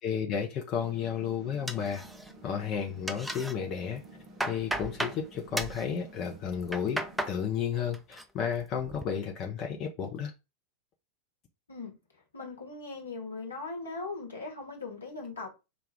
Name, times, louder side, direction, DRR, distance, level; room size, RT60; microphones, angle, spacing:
voice 1, 0.0-2.0 2.4-4.0 4.4-10.3, left 7 dB, 35° left, 0.7 m, -32 dB
sound 1, 0.7-7.2, right 2 dB, 40° right, 0.8 m, -52 dB
sound 2, 1.7-2.5 2.8-3.5 4.0-5.2 5.5-5.8 6.5-7.4 7.7-8.2 8.6-9.0, right 1 dB, 5° right, 0.5 m, -35 dB
voice 2, 12.3-15.5, left 3 dB, 75° left, 1.2 m, -39 dB
5.0 x 2.3 x 3.4 m
figure-of-eight pair, 90°, 0 cm